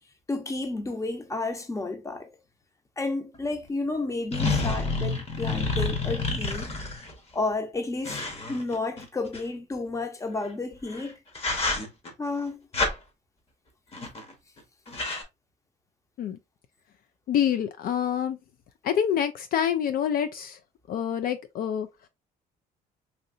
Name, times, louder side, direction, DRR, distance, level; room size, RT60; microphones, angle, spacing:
voice 1, 0.3-2.3 3.0-6.7 7.3-11.2 12.2-12.6, left 3 dB, 20° left, 0.8 m, -31 dB
sound 1, 3.3-3.4 4.3-7.1 8.1-9.4 10.8-11.0 11.4-12.1 12.7-12.9 13.9-14.3 14.6-14.7 14.9-15.2, left 3 dB, 35° left, 1.1 m, -29 dB
voice 2, 17.3-18.4 18.8-20.6 20.9-21.9, left 9 dB, 60° left, 0.4 m, -26 dB
3.1 x 2.7 x 2.6 m
cardioid pair, 110°, 17 cm